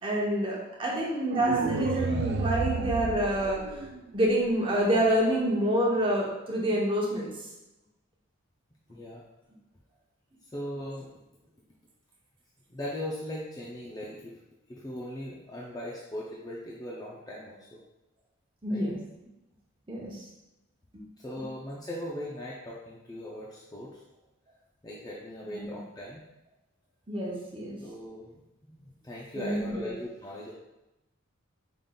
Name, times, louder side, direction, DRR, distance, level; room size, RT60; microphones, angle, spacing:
voice 1, 0.0-3.6 4.1-7.3 18.6-19.0 19.9-20.2 20.9-21.1 21.4-21.5 25.5-25.7 27.1-27.8 29.3-29.9, right 1 dB, 25° right, -4 dB, 0.8 m, -27 dB
sound 1, 1.3-4.3, right 3 dB, 50° right, 0.3 m, -32 dB
voice 2, 8.9-9.3 10.4-11.1 12.7-14.4 14.7-17.8 18.7-18.9 21.2-24.0 24.8-26.2 27.8-30.5, left 1 dB, 20° left, -4 dB, 0.4 m, -39 dB
5.1 x 3.7 x 2.3 m, 0.96 s
head